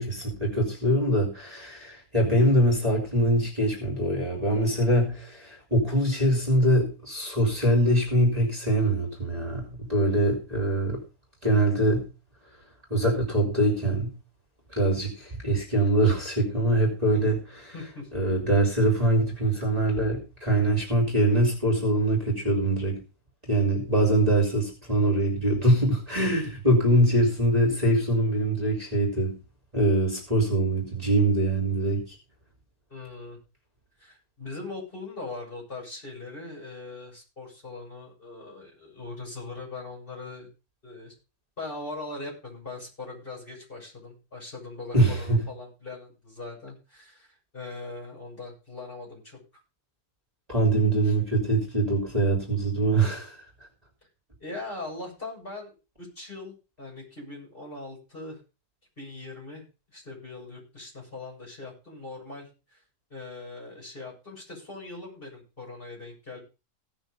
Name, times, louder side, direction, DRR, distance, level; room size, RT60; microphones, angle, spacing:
voice 1, 0.0-11.0 11.4-12.1 12.9-14.1 14.7-17.7 18.1-23.0 23.5-29.4 29.7-32.0 44.9-45.4 50.5-53.4, right 1 dB, 25° right, 0 dB, 3.5 m, -23 dB
voice 2, 17.7-18.1 32.9-33.4 34.0-40.5 40.8-41.1 41.6-47.3 47.5-49.4 51.0-51.1 54.4-58.4 59.0-59.6 59.9-62.8 63.1-66.4, left 3 dB, 35° left, -2 dB, 7.8 m, -40 dB
17.0 x 6.5 x 5.3 m, 0.32 s
omnidirectional pair, 1.5 m